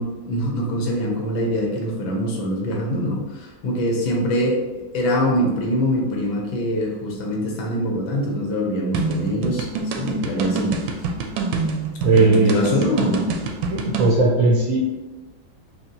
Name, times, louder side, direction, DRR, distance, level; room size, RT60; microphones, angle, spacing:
voice 1, 0.0-4.6 4.9-11.1 12.1-13.3, equal, 85° left, 0 dB, 1.7 m, -24 dB
sound 1, 8.9-14.1, right 4 dB, 85° right, 1.3 m, -25 dB
voice 2, 12.0-12.6 13.7-14.8, right 3 dB, 70° right, -3 dB, 0.8 m, -17 dB
6.3 x 2.4 x 2.8 m, 1.2 s
omnidirectional pair, 2.1 m